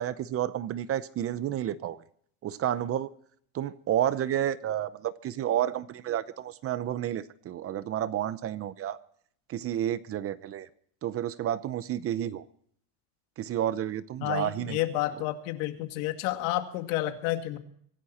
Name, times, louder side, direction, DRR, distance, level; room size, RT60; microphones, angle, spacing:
voice 1, 0.0-2.0 2.4-3.1 3.5-9.0 9.5-10.7 11.0-12.4 13.4-14.8, right 11 dB, 35° right, 16 dB, 0.7 m, -30 dB
voice 2, 14.2-17.6, left 15 dB, 80° left, 7 dB, 2.2 m, -30 dB
24.5 x 11.5 x 4.3 m, 0.62 s
cardioid pair, 145°, 42 cm